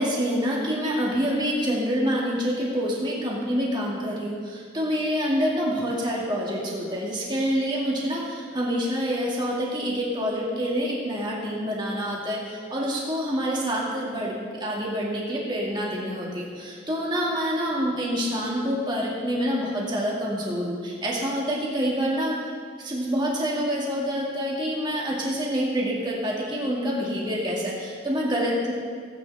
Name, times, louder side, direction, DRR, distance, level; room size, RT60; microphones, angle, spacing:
voice 1, 0.0-22.4 22.8-28.7, equal, 25° right, -4 dB, 2.2 m, -27 dB
18.0 x 9.2 x 3.5 m, 2.1 s
head